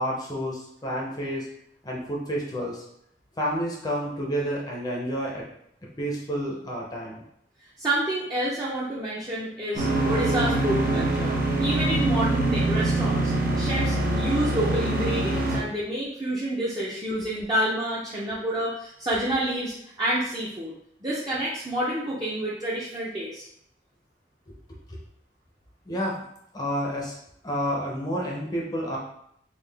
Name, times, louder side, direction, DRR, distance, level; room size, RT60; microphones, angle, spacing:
voice 1, 0.0-1.5 1.8-2.8 3.4-5.4 6.0-7.2 17.2-17.3 24.9-25.0 25.9-26.2 26.5-27.1 27.4-29.0, equal, 20° left, -3 dB, 0.7 m, -29 dB
voice 2, 7.8-20.7 21.0-23.4, right 1 dB, 25° right, -8 dB, 0.6 m, -28 dB
sound 1, 9.7-15.6, right 2 dB, 55° right, 0.9 m, -24 dB
3.8 x 2.3 x 3.4 m, 0.71 s
head